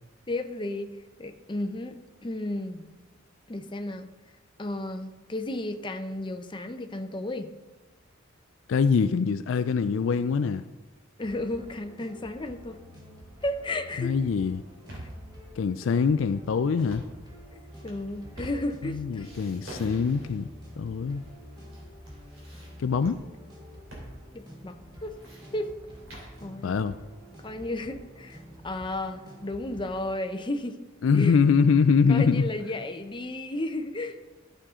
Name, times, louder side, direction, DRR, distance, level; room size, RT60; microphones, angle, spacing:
voice 1, 0.3-2.9 3.5-4.1 4.6-7.5 11.2-12.8 13.4-14.1 17.5-19.4 24.3-25.2 25.5-25.7 26.4-26.8 27.4-30.8 31.1-31.4 32.1-34.2, left 1 dB, 25° left, 7 dB, 0.7 m, -33 dB
voice 2, 8.7-10.6 14.0-14.6 15.6-17.1 18.8-20.5 20.8-21.2 22.8-23.2 26.6-27.0 31.0-32.5, left 5 dB, 70° left, 11 dB, 0.4 m, -23 dB
sound 1, 11.2-30.1, equal, 20° right, 1.8 m, -48 dB
sound 2, 14.5-15.3 16.7-17.2 17.7-18.9 19.2-20.5 21.2-21.8 22.1-23.1 23.9-24.1 24.4-24.5 24.9-26.4, right 1 dB, 80° right, 3.2 m, -45 dB
14.0 x 6.5 x 3.7 m, 1.2 s
head